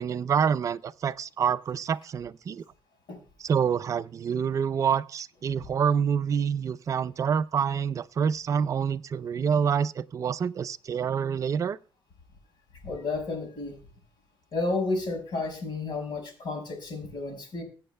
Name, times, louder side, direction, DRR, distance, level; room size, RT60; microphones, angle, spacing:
voice 1, 0.0-2.6 3.4-11.8, right 7 dB, 40° right, 0.4 m, -27 dB
voice 2, 12.8-13.8 14.5-17.6, left 3 dB, 70° left, 5.1 m, -31 dB
22.0 x 7.9 x 2.2 m
cardioid pair, 140°, 8 cm